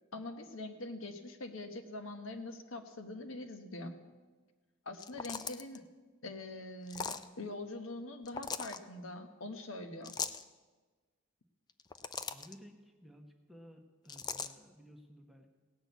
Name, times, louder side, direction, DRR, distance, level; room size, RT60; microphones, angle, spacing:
voice 1, 0.1-3.9 4.8-5.8 6.2-10.1, left 2 dB, 75° left, 7 dB, 1.1 m, -44 dB
sound 1, 4.9-5.8 6.9-7.3 8.3-8.8 10.0-10.4 11.7-12.5 14.1-14.5, left 6 dB, 20° left, 0.3 m, -39 dB
voice 2, 12.2-15.5, equal, ahead, 3 dB, 1.0 m, -56 dB
17.0 x 6.1 x 8.1 m, 1.4 s
head